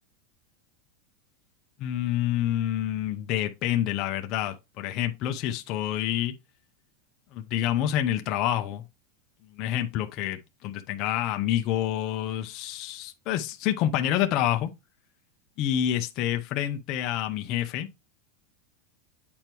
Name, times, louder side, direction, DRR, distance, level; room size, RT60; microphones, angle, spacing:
voice 1, 1.8-6.3 7.3-8.8 9.5-14.7 15.6-17.9, left 11 dB, 40° left, 0.7 m, -28 dB
8.7 x 4.5 x 3.0 m
supercardioid pair, 155°, 0 cm